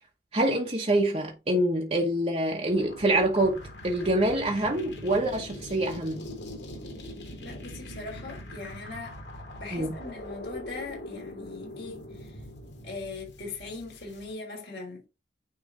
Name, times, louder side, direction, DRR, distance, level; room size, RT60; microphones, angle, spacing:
voice 1, 0.3-6.3 9.7-9.9, right 1 dB, 35° right, 1.0 m, -26 dB
sound 1, 2.7-14.3, left 1 dB, 85° left, 3.3 m, -42 dB
voice 2, 7.4-9.2 9.6-12.3 12.8-15.0, left 3 dB, 70° left, 3.4 m, -40 dB
9.4 x 3.3 x 3.8 m
head